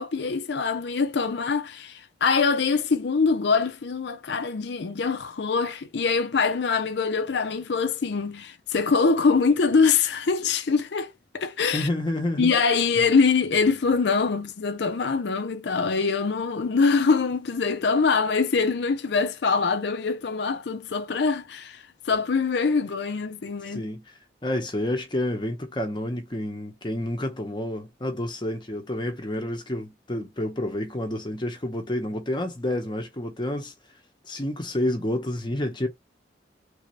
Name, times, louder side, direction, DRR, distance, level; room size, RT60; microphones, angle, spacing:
voice 1, 0.0-11.9 12.4-23.8, left 4 dB, 70° left, 0.5 m, -24 dB
voice 2, 11.7-12.5 23.7-33.7 34.2-35.9, left 1 dB, 25° left, 0.7 m, -29 dB
3.4 x 2.6 x 3.1 m
head